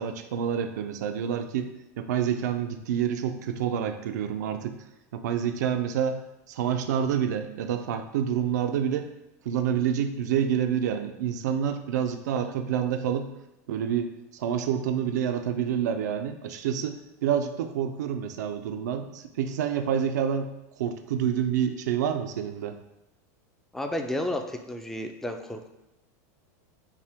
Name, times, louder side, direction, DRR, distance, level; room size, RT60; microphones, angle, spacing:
voice 1, 0.0-1.7 2.0-4.8 5.1-9.1 9.5-13.3 13.7-20.5 20.8-22.8, right 8 dB, 90° right, 7 dB, 0.4 m, -28 dB
voice 2, 23.7-25.7, left 1 dB, 5° left, 5 dB, 0.3 m, -32 dB
5.6 x 2.1 x 3.4 m, 0.92 s
supercardioid pair, 140°, 9 cm